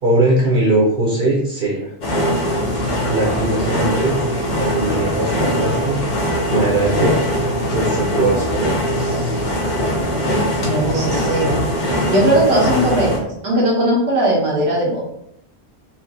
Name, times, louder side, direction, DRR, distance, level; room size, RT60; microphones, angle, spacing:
voice 1, 0.0-1.9 3.0-4.2 4.5-6.0 6.5-7.3 7.7-9.5, right 2 dB, 60° right, -3 dB, 1.0 m, -20 dB
sound 1, 2.0-13.2, equal, 50° left, 0.8 m, -21 dB
voice 2, 10.6-11.6 12.1-15.0, right 1 dB, 85° right, -3 dB, 1.5 m, -18 dB
4.4 x 2.7 x 2.7 m, 0.73 s
omnidirectional pair, 1.1 m